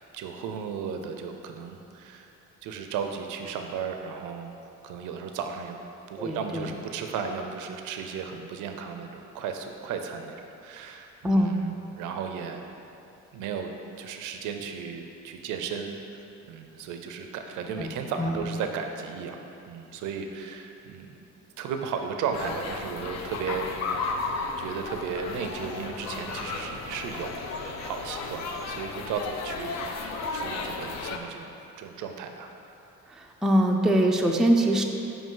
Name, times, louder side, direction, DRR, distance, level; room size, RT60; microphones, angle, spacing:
voice 1, 0.1-2.3 2.6-4.5 4.8-5.8 6.1-12.6 13.3-13.7 14.0-16.2 16.5-19.4 19.7-21.1 21.6-23.7 24.3-32.5, right 6 dB, 90° right, 5 dB, 0.5 m, -35 dB
voice 2, 6.2-6.7 11.2-11.6 17.7-18.5 33.1-34.8, right 1 dB, ahead, 2 dB, 0.3 m, -24 dB
sound 1, 22.3-31.2, left 4 dB, 60° left, 0.5 m, -34 dB
5.1 x 5.0 x 3.8 m, 2.8 s
cardioid pair, 90°, 30 cm